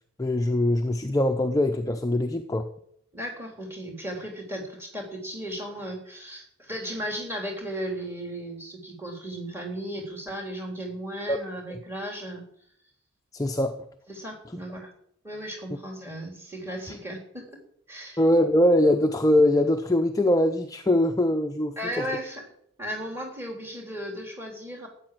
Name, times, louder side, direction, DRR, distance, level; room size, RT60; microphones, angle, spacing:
voice 1, 0.2-2.7 11.3-11.4 13.3-13.8 18.2-22.0, left 1 dB, 15° left, 0.6 m, -22 dB
voice 2, 3.1-12.5 14.1-14.9 15.2-17.6 17.9-18.2 21.8-22.5 22.8-24.9, equal, 10° right, 3.3 m, -35 dB
13.5 x 9.0 x 7.5 m
head